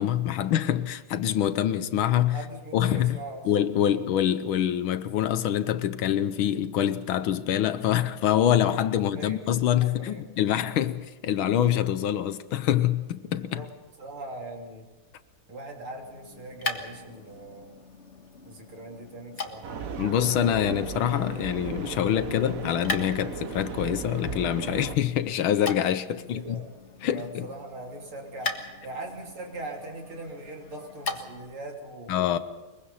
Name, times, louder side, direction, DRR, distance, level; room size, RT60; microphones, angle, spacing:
voice 1, 0.0-2.4 2.7-3.2 3.4-13.6 20.0-26.6 27.0-27.5 32.1-32.4, left 10 dB, 70° left, 1.6 m, -25 dB
voice 2, 2.3-3.4 3.8-4.0 9.1-9.4 9.8-10.2 13.6-13.7 14.0-14.9 15.5-17.7 18.5-19.9 26.1-26.7 27.1-28.5 28.8-32.1, right 2 dB, 75° right, 4.0 m, -40 dB
sound 1, 16.0-31.6, left 3 dB, 35° left, 1.7 m, -40 dB
sound 2, 19.6-25.0, right 6 dB, 50° right, 1.2 m, -36 dB
22.5 x 22.5 x 5.6 m
omnidirectional pair, 2.4 m